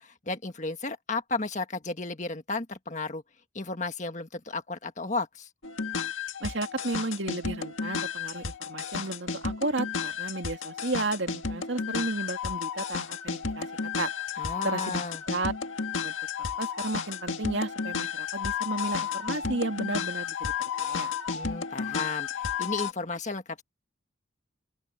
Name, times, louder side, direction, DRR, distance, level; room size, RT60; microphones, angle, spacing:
voice 1, 0.0-3.2 3.5-5.5 14.4-15.2 21.3-23.6, left 3 dB, 35° left, 1.6 m, -33 dB
sound 1, 5.6-22.9, left 6 dB, 80° left, 1.7 m, -33 dB
voice 2, 6.4-13.7 14.0-15.5 16.0-16.2 16.6-20.5 20.8-21.1, right 2 dB, 65° right, 2.1 m, -33 dB
open air
head